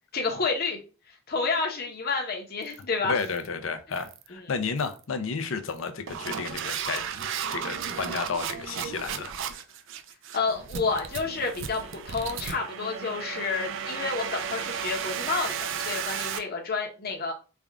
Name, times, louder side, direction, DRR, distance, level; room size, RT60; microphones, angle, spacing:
voice 1, 0.1-0.8 1.3-3.2 4.3-4.4 10.3-17.3, left 4 dB, 45° left, 2 dB, 0.9 m, -30 dB
sound 1, 2.6-2.8 3.2-3.5 3.9-4.3 4.8-5.0 5.7-16.4, right 7 dB, 60° right, 0.4 m, -34 dB
voice 2, 3.0-9.3, left 5 dB, 65° left, 9 dB, 0.6 m, -32 dB
3.4 x 2.4 x 3.5 m, 0.33 s
head